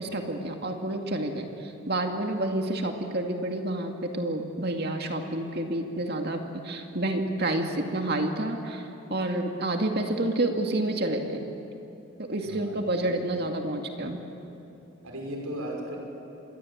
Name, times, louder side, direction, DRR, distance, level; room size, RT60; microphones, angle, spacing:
voice 1, 0.0-11.5 12.2-14.2, right 1 dB, 45° right, 3 dB, 2.2 m, -29 dB
voice 2, 12.5-13.0 15.0-16.0, equal, 90° right, 0 dB, 5.9 m, -36 dB
27.0 x 22.0 x 8.8 m, 3.0 s
head